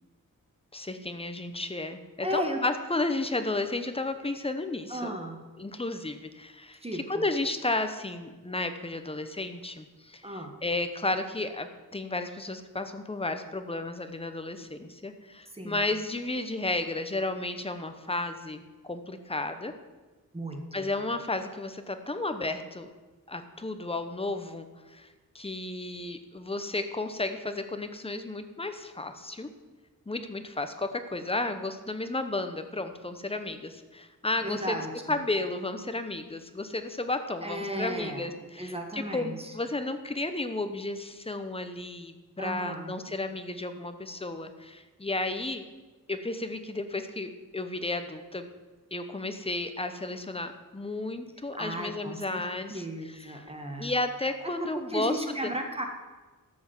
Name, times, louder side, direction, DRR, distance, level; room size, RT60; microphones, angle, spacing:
voice 1, 0.7-5.1 5.6-19.7 20.7-22.9 23.3-25.1 25.3-29.5 30.1-34.8 35.1-45.7 46.1-48.5 48.9-53.4 53.8-55.5, left 2 dB, 15° left, 8 dB, 1.0 m, -33 dB
voice 2, 2.2-2.6 4.9-5.4 6.8-7.3 10.2-10.5 15.5-15.8 20.3-20.9 34.4-35.2 37.4-38.3 38.6-39.5 42.4-42.9 51.6-52.4 52.7-53.9 54.6-55.9, right 1 dB, 15° right, 3 dB, 1.7 m, -35 dB
13.5 x 6.3 x 7.3 m, 1.2 s
wide cardioid pair, 110°, 35 cm